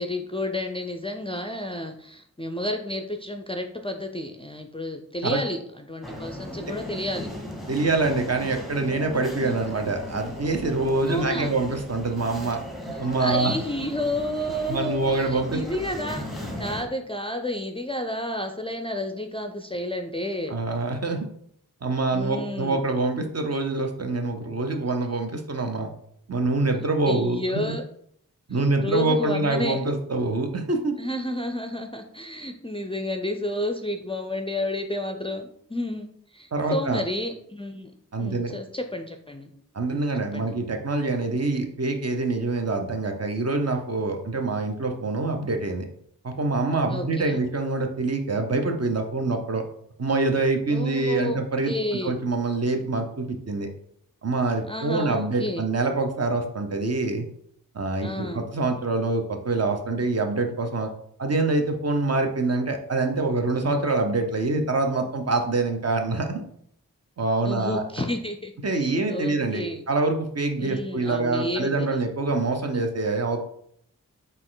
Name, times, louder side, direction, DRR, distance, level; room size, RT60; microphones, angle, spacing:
voice 1, 0.0-7.3 11.1-11.5 13.2-20.6 22.1-22.8 27.1-27.8 28.5-29.8 31.0-37.9 38.2-39.5 39.9-40.6 46.9-47.4 50.7-51.4 51.7-52.1 54.7-55.6 58.0-58.5 67.4-69.9 70.6-72.0, left 1 dB, 15° left, 5 dB, 0.4 m, -31 dB
sound 1, 6.0-16.8, left 1 dB, ahead, 0.9 m, -37 dB
voice 2, 7.7-12.6 13.0-13.5 14.7-15.6 20.5-21.3 21.8-25.9 26.3-27.8 28.5-31.0 36.5-37.0 38.1-38.5 39.7-45.9 46.2-49.6 50.0-51.7 52.0-53.7 54.2-57.3 57.7-60.9 61.2-66.4 67.2-67.8 68.6-73.4, right 3 dB, 45° right, 4 dB, 0.7 m, -25 dB
4.3 x 2.5 x 3.8 m, 0.68 s
cardioid pair, 40°, 35 cm